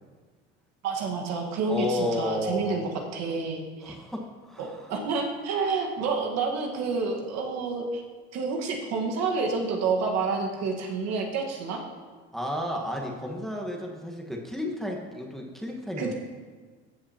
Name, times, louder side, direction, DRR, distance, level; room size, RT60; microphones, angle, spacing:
voice 1, 0.8-3.9 4.6-8.0 8.3-11.8 16.0-16.1, right 4 dB, 60° right, 1 dB, 1.6 m, -29 dB
voice 2, 1.7-2.8 3.8-4.9 12.3-16.1, left 1 dB, ahead, -1 dB, 1.5 m, -32 dB
14.5 x 6.5 x 2.9 m, 1.5 s
hypercardioid pair, 80°, 30 cm